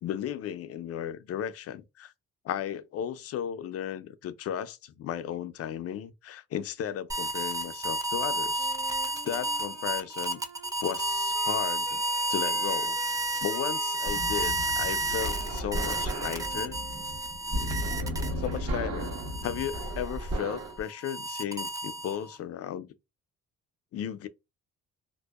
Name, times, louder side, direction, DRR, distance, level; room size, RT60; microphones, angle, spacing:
voice 1, 0.0-2.1 2.4-8.7 9.2-10.4 10.8-12.0 12.3-13.0 13.4-16.8 18.4-19.1 19.4-22.9 23.9-24.3, left 10 dB, 55° left, 0.4 m, -35 dB
sound 1, 7.1-18.6 19.0-22.4, right 1 dB, 10° right, 0.4 m, -31 dB
Wind instrument woodwind instrument, 8.6-17.4, right 5 dB, 75° right, 0.8 m, -49 dB
sound 2, 14.1-20.8, equal, 55° right, 1.1 m, -34 dB
2.6 x 2.0 x 2.3 m
cardioid pair, 90°, 30 cm